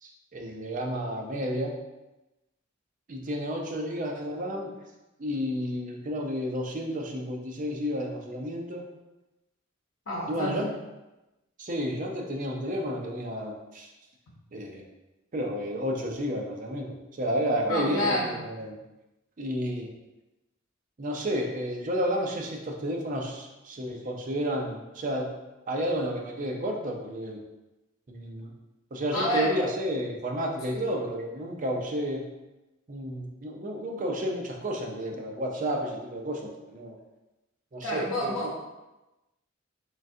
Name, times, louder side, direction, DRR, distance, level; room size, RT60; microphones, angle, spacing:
voice 1, 0.0-1.8 3.1-4.7 5.2-8.8 10.3-10.8 11.6-13.9 14.5-14.8 15.3-18.8 19.4-19.9 21.0-25.3 25.7-27.4 28.1-28.5 28.9-32.3 32.9-37.0 37.7-38.5, equal, 40° right, 1 dB, 0.5 m, -31 dB
voice 2, 10.1-10.6 17.7-18.4 29.1-29.6 30.7-30.9 37.8-38.7, equal, 75° left, -5 dB, 0.8 m, -29 dB
3.8 x 3.3 x 2.6 m, 1.0 s
head